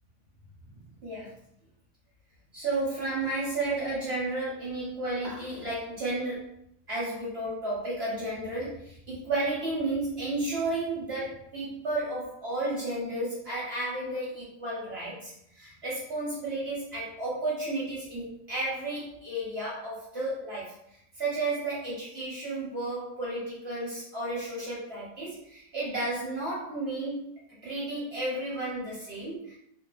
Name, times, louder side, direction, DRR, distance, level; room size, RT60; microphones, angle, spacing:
voice 1, 1.0-1.3 2.5-6.4 6.9-20.7 21.2-27.3 27.6-29.6, right 2 dB, 50° right, -7 dB, 0.9 m, -32 dB
2.7 x 2.1 x 2.3 m, 0.73 s
omnidirectional pair, 1.8 m